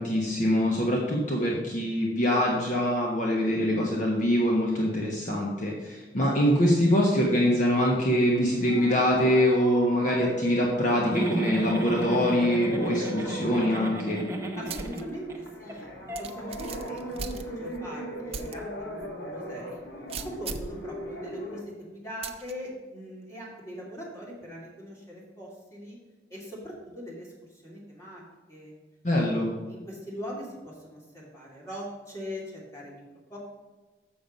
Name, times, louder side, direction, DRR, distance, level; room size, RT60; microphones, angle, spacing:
voice 1, 0.0-14.2 29.0-29.5, equal, 45° left, -2 dB, 1.2 m, -24 dB
sound 1, 8.1-21.6, right 1 dB, 70° left, 1.6 m, -38 dB
Giggle, 11.1-15.4 15.7-15.8 16.1-16.2, right 1 dB, 15° right, 0.9 m, -34 dB
voice 2, 14.6-19.8 20.2-26.0 26.3-28.2 28.5-28.8 29.1-33.0 33.3-33.4, equal, 15° left, -4 dB, 2.6 m, -41 dB
sound 2, 14.7-15.0 15.4-15.5 16.1-17.8 18.3-18.6 19.0-19.1 20.1-20.8 22.2-22.5, right 5 dB, 35° right, 0.5 m, -37 dB
7.2 x 6.7 x 5.3 m, 1.3 s
head